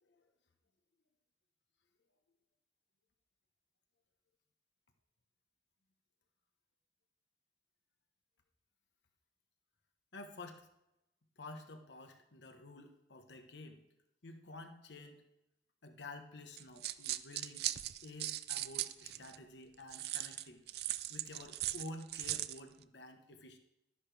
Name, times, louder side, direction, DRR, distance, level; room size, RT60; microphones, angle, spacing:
voice 1, 10.1-10.7 11.4-13.8 14.2-15.2 15.8-17.7 18.0-20.6 21.1-23.6, left 2 dB, 85° left, 6 dB, 1.2 m, -51 dB
sound 1, 16.6-19.4 19.9-22.6, right 14 dB, 60° right, 0.4 m, -39 dB
12.0 x 10.5 x 3.4 m, 0.87 s
head